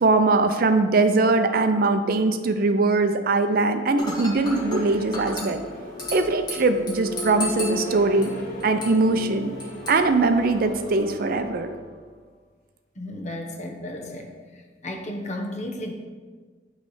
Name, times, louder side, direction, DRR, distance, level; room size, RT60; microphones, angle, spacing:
voice 1, 0.0-5.6 6.1-8.3 8.6-9.5 9.9-11.8, right 3 dB, 55° right, 8 dB, 0.5 m, -21 dB
Dishes pots and pans / Glass, 4.0-11.0, left 1 dB, 25° left, 1.5 m, -37 dB
sound 1, 4.3-12.2, left 1 dB, 55° left, 1.5 m, -37 dB
voice 2, 13.0-14.3 14.8-15.9, left 1 dB, 40° left, 2 dB, 0.9 m, -33 dB
9.0 x 3.2 x 5.5 m, 1.5 s
head